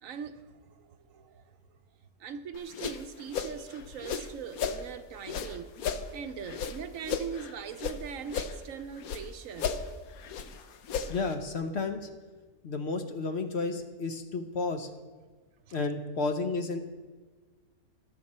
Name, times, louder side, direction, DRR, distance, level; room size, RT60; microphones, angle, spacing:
voice 1, 0.0-1.6 2.2-5.7 6.1-9.7 15.7-15.9, right 7 dB, 70° right, 1.0 m, -41 dB
sound 1, 2.5-4.8 5.2-8.0 8.3-9.3 9.5-11.3, left 6 dB, 80° left, 1.2 m, -35 dB
voice 2, 11.1-12.1 12.6-14.9 15.7-16.8, left 3 dB, 55° left, 0.9 m, -32 dB
19.5 x 6.7 x 4.2 m
omnidirectional pair, 1.5 m